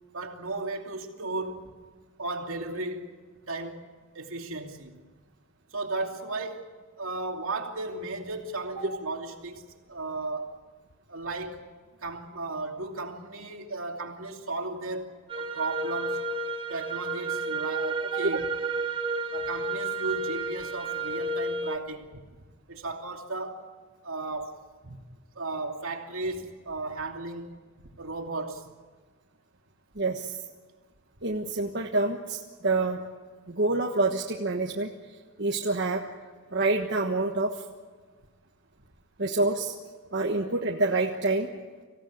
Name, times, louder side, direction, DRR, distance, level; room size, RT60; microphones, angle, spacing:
voice 1, 0.1-1.7 2.2-3.1 3.5-3.8 4.1-4.9 5.7-10.6 11.1-11.7 12.0-16.2 16.7-18.5 19.3-22.1 22.7-24.6 25.3-27.6 28.0-28.7, right 2 dB, 70° right, 2.7 m, -35 dB
sound 1, 15.3-21.8, right 3 dB, 25° right, 1.3 m, -31 dB
voice 2, 29.9-30.4 31.2-33.0 33.5-34.9 35.4-36.1 36.5-37.6 39.2-39.7 40.1-41.5, right 2 dB, 50° right, 1.4 m, -27 dB
26.5 x 16.5 x 9.5 m
head